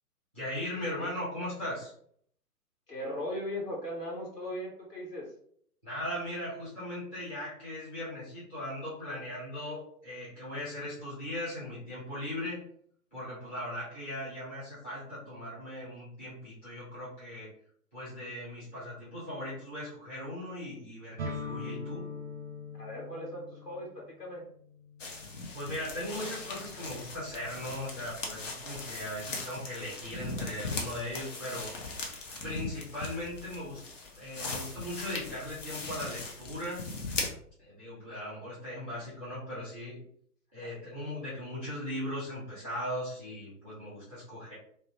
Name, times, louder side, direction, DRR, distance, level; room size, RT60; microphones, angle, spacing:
voice 1, 0.3-1.9 5.8-12.6 13.1-17.5 17.9-22.0 25.5-31.7 32.4-33.8 34.1-36.9 37.6-40.0 40.5-44.5, left 1 dB, 10° left, -9 dB, 0.4 m, -38 dB
voice 2, 2.9-5.2 22.8-24.4 40.6-40.7, left 1 dB, 85° left, -4 dB, 1.0 m, -38 dB
sound 1, 21.2-28.8, left 3 dB, 50° right, 0.4 m, -44 dB
sound 2, 25.0-37.3, left 3 dB, 50° left, 0.8 m, -39 dB
2.7 x 2.0 x 3.0 m, 0.63 s
figure-of-eight pair, 125°, 47 cm